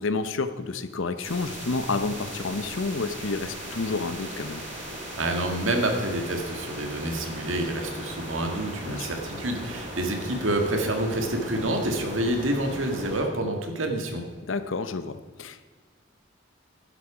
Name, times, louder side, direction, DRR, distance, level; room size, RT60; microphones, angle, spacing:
voice 1, 0.0-4.6 8.9-9.1 14.5-15.6, left 3 dB, 80° left, 11 dB, 0.8 m, -30 dB
sound 1, 1.2-13.2, equal, 35° right, 4.2 m, -38 dB
voice 2, 5.2-14.2, right 1 dB, 85° right, 4 dB, 1.9 m, -28 dB
12.0 x 11.0 x 5.0 m, 1.5 s
head